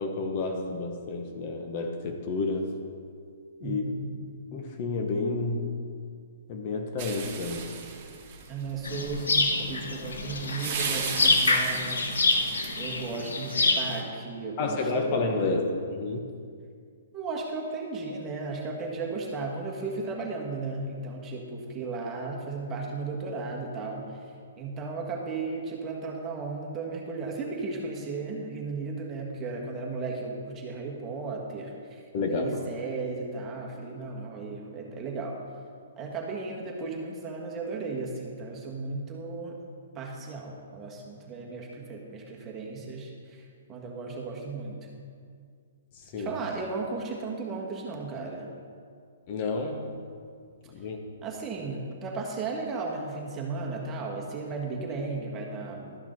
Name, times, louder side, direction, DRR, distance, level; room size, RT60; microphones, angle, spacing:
voice 1, 0.0-2.7 3.6-3.9 4.5-5.7 6.5-7.7 14.6-15.6 15.9-16.2 32.1-32.5 45.9-46.4 49.3-50.0 50.7-51.1, left 3 dB, 40° left, 4 dB, 1.0 m, -30 dB
voice 2, 3.6-4.1 8.5-12.1 12.8-15.5 17.1-24.2 24.6-35.4 36.0-39.6 39.9-44.9 46.2-48.5 51.2-56.0, right 3 dB, 20° right, -1 dB, 1.5 m, -35 dB
sound 1, 7.0-13.0, right 6 dB, 40° right, 1.5 m, -37 dB
sound 2, 8.8-14.0, left 3 dB, 85° left, 1.1 m, -26 dB
12.5 x 5.9 x 4.5 m, 2.2 s
hypercardioid pair, 140°, 0 cm